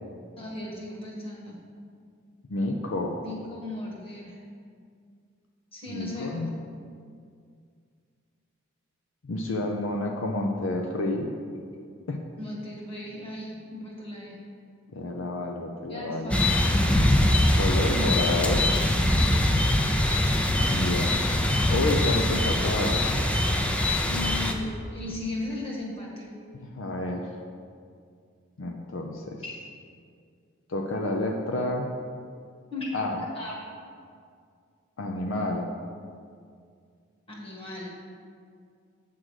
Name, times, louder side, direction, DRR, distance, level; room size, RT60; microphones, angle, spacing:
voice 1, 0.4-1.6 3.2-4.4 5.7-6.4 12.4-14.4 15.9-16.6 18.0-18.1 24.1-26.3 29.4-29.5 32.7-33.6 37.3-37.9, left 2 dB, 30° left, -4 dB, 1.5 m, -36 dB
voice 2, 2.5-3.2 5.9-6.5 9.2-11.3 12.1-12.2 14.9-16.3 17.5-18.7 20.7-21.2 21.7-23.3 26.5-27.3 28.6-29.4 30.7-31.9 32.9-33.2 35.0-35.7, left 2 dB, 70° left, 2 dB, 0.5 m, -29 dB
sound 1, 16.3-24.5, left 1 dB, 5° left, 0.4 m, -23 dB
7.6 x 3.7 x 6.3 m, 2.2 s
head